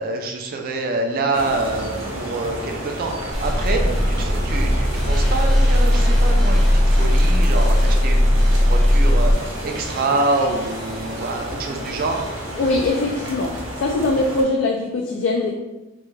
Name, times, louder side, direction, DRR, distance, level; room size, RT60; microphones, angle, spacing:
voice 1, 0.0-3.9 4.2-12.3, right 3 dB, 45° right, 3 dB, 0.4 m, -26 dB
sound 1, 1.3-14.4, right 1 dB, 65° right, 0.8 m, -31 dB
sound 2, 2.9-13.2, equal, ahead, 0.6 m, -41 dB
Canon Street - Routemaster bus journey, 3.3-9.3, equal, 85° left, 1.4 m, -17 dB
voice 2, 12.6-15.5, left 2 dB, 70° left, 1 dB, 0.3 m, -22 dB
3.4 x 2.2 x 3.1 m, 1.1 s
head